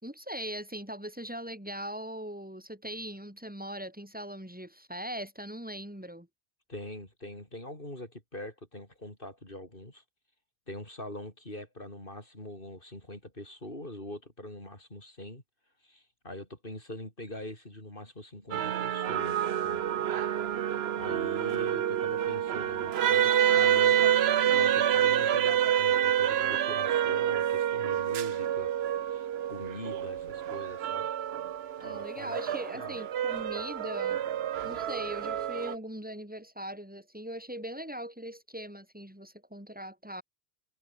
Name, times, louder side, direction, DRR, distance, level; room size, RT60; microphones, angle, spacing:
voice 1, 0.0-6.3 31.8-34.2 34.6-40.2, equal, 10° right, 3.7 m, -40 dB
voice 2, 6.7-10.0 10.7-15.4 15.8-19.8 21.0-24.2 24.5-28.7 29.0-31.1 31.8-32.4 32.7-33.0, left 1 dB, 60° left, 7.2 m, -43 dB
sound 1, 18.5-35.7, right 10 dB, 80° right, 1.0 m, -28 dB
omnidirectional pair, 1.0 m